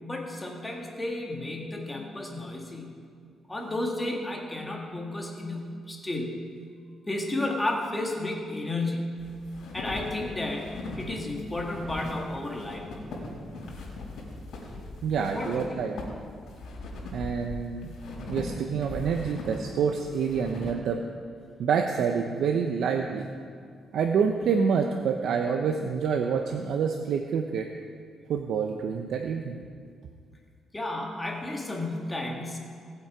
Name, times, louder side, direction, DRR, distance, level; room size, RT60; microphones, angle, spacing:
voice 1, 0.0-3.0 3.5-6.4 7.1-9.2 9.7-10.7 11.0-12.9 15.3-15.8 30.7-32.6, left 2 dB, 15° left, 0 dB, 1.8 m, -32 dB
sound 1, 9.2-20.7, left 2 dB, 70° left, 3.8 m, -40 dB
voice 2, 15.0-15.9 17.1-17.9 18.3-21.0 21.6-23.3 23.9-27.7 28.3-29.6, right 6 dB, 70° right, 3 dB, 0.7 m, -27 dB
18.5 x 7.8 x 4.9 m, 2.1 s
cardioid pair, 115°, 0 cm